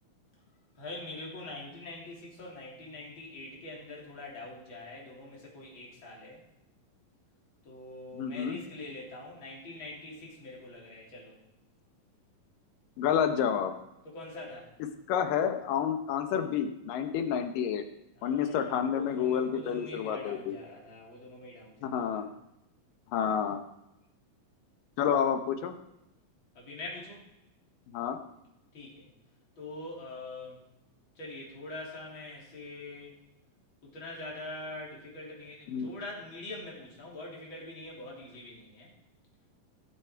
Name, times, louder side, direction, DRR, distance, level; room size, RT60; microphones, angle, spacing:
voice 1, 0.8-6.4 7.6-11.4 14.0-14.7 18.2-22.2 26.5-27.2 28.7-29.1 29.6-30.7 31.2-33.1 33.8-38.9, left 2 dB, 35° left, -4 dB, 3.9 m, -44 dB
voice 2, 8.1-8.6 13.0-13.7 15.1-17.8 18.2-20.6 21.8-22.3 23.1-23.6 25.0-25.7 27.9-28.2 35.7-35.9, left 8 dB, 75° left, 7 dB, 2.6 m, -29 dB
18.0 x 7.5 x 4.6 m, 0.86 s
omnidirectional pair, 4.0 m